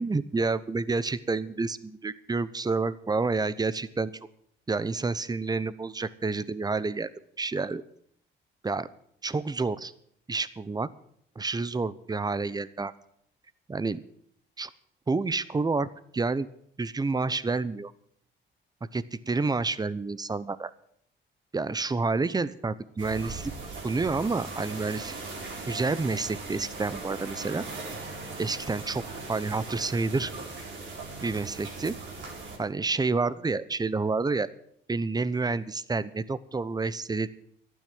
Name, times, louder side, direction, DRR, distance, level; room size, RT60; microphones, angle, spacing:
voice 1, 0.0-4.1 4.7-7.1 7.4-7.8 8.6-8.9 9.2-9.9 10.3-10.9 11.4-12.9 13.7-14.0 14.6-14.7 15.1-15.9 16.1-16.5 16.8-17.9 18.9-20.7 21.5-23.5 23.8-25.2 25.7-27.6 28.4-29.0 29.3-30.3 31.2-31.9 32.6-34.5 34.9-37.3, right 3 dB, 20° right, 17 dB, 0.8 m, -29 dB
sound 1, 23.0-32.6, right 3 dB, 70° right, 4.6 m, -39 dB
12.0 x 9.5 x 8.6 m, 0.67 s
cardioid pair, 90°, 20 cm